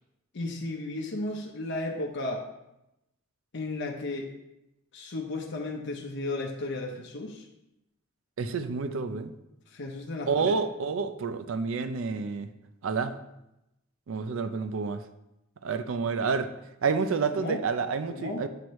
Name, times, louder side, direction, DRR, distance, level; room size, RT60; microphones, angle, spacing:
voice 1, 0.3-2.4 3.5-4.3 4.9-7.4 9.7-10.5 17.4-17.6 18.1-18.5, left 2 dB, 60° left, 0 dB, 0.7 m, -34 dB
voice 2, 8.4-9.3 10.3-12.5 12.8-13.2 14.1-15.0 15.6-16.5 16.8-18.5, right 5 dB, 70° right, 9 dB, 0.4 m, -29 dB
7.6 x 3.1 x 4.6 m, 0.89 s
head